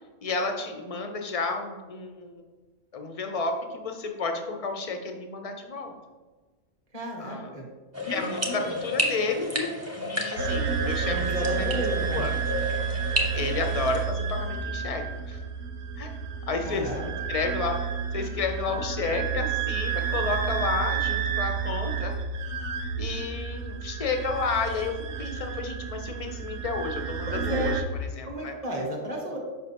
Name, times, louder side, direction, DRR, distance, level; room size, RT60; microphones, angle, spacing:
voice 1, 0.2-2.3 2.9-5.9 7.2-7.6 8.1-9.7 10.0-11.7 12.1-12.4 13.3-15.4 16.0-16.2 16.5-17.8 18.1-22.2 23.0-24.9 25.2-27.7 28.0-28.5, left 4 dB, 55° left, 4 dB, 0.4 m, -31 dB
voice 2, 6.9-7.7 8.1-8.7 11.1-12.2 16.6-17.0 27.3-27.8 28.2-29.4, equal, 30° right, -1 dB, 1.2 m, -32 dB
sound 1, 7.9-14.0, equal, 15° right, 0.6 m, -31 dB
sound 2, 10.4-27.8, right 7 dB, 85° right, 1.1 m, -31 dB
6.4 x 5.1 x 2.9 m, 1.3 s
omnidirectional pair, 1.3 m